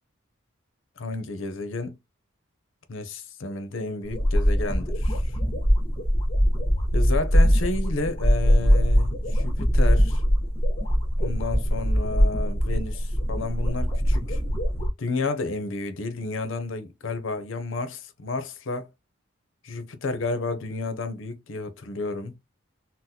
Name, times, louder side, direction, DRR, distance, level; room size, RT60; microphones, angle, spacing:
voice 1, 1.0-2.0 2.9-5.4 6.9-10.2 11.2-14.4 15.0-18.9 19.6-22.3, left 3 dB, 70° left, 0.6 m, -31 dB
sound 1, 4.0-14.9, equal, 25° left, 1.0 m, -22 dB
3.9 x 2.1 x 2.7 m
head